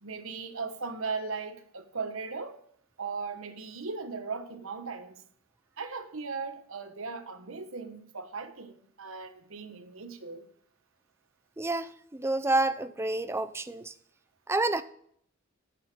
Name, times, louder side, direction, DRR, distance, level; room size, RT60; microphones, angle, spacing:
voice 1, 0.0-2.6 3.0-5.2 5.8-10.5, right 4 dB, 70° right, 1.2 m, -38 dB
voice 2, 11.6-13.9 14.5-14.8, right 2 dB, 10° right, 0.5 m, -29 dB
10.0 x 8.3 x 4.5 m
head